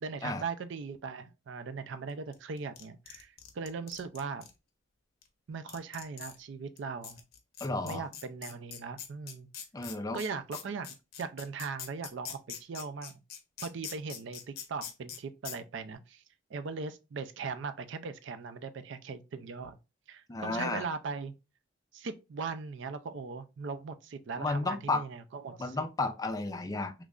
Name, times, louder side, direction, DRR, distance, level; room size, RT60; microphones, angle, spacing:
voice 1, 0.0-4.4 5.5-7.2 7.8-9.5 10.1-13.1 13.6-16.2 16.5-19.8 20.1-21.3 21.9-25.8, right 5 dB, 65° right, 0.4 m, -39 dB
sound 1, 2.3-4.5 5.2-5.3 5.7-6.4 6.8-6.9 7.0-15.2 15.4-15.6, left 8 dB, 50° left, 0.7 m, -43 dB
voice 2, 7.6-8.0 9.7-10.2 20.3-20.9 24.4-25.0 25.6-26.9, left 3 dB, 20° left, 0.4 m, -32 dB
3.1 x 2.4 x 3.6 m
head